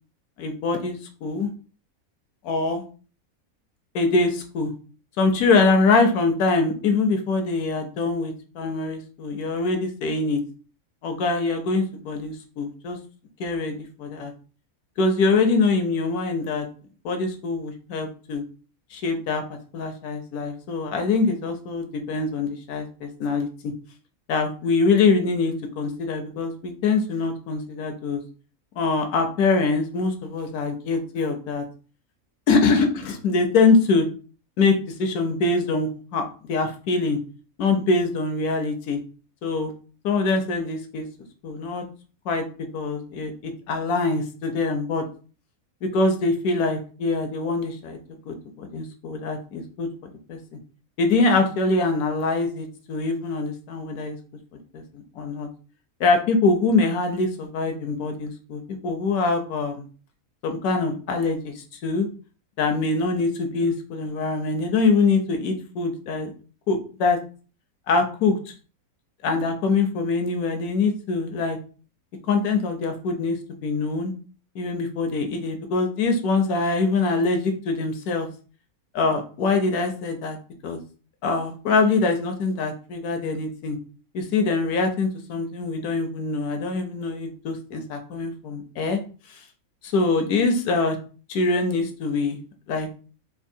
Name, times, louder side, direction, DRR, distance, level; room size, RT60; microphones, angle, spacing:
voice 1, 0.4-1.5 2.4-2.8 3.9-4.7 5.2-10.4 11.0-13.0 13.4-14.3 15.0-16.7 17.0-18.4 18.9-19.4 19.7-23.7 24.3-28.2 28.8-31.6 32.5-34.1 34.6-36.2 36.5-37.2 37.6-39.0 39.4-39.7 40.0-41.1 41.4-41.8 42.3-42.4 42.7-45.0 45.8-48.0 48.3-50.4 51.0-54.2 54.7-55.5 56.0-59.9 60.4-62.1 62.6-66.3 66.7-67.2 67.9-68.4 69.2-71.6 72.3-74.1 74.5-78.3 78.9-80.4 80.6-80.8 81.2-83.8 84.1-89.0 89.8-91.0 91.3-92.4 92.7-92.9, left 3 dB, 80° left, 5 dB, 1.2 m, -24 dB
4.4 x 2.4 x 2.7 m, 0.38 s
omnidirectional pair, 1.5 m